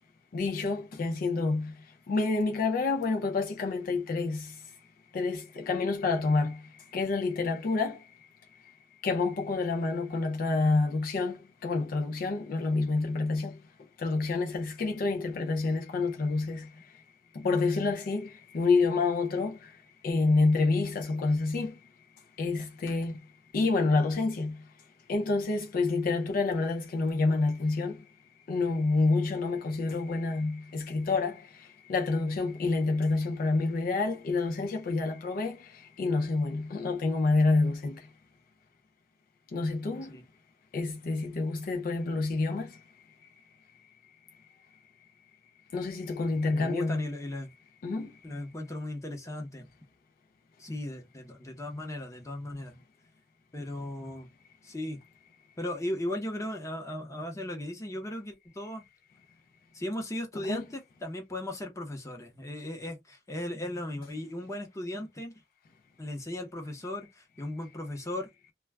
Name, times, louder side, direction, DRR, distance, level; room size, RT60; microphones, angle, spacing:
voice 1, 0.3-4.8 5.1-8.2 8.5-8.7 9.0-13.6 14.0-16.9 17.3-21.8 22.4-23.2 23.5-24.6 25.1-28.0 28.5-38.1 39.5-40.2 40.7-42.8 43.2-43.3 45.7-47.0 47.8-48.2 60.5-60.6, left 3 dB, 55° left, 0.4 m, -28 dB
voice 2, 46.5-47.5 48.2-49.7 50.6-52.8 53.5-54.3 54.6-55.0 55.6-58.8 59.7-65.3 66.0-68.3, left 1 dB, 20° left, 0.8 m, -37 dB
2.3 x 2.2 x 3.2 m
head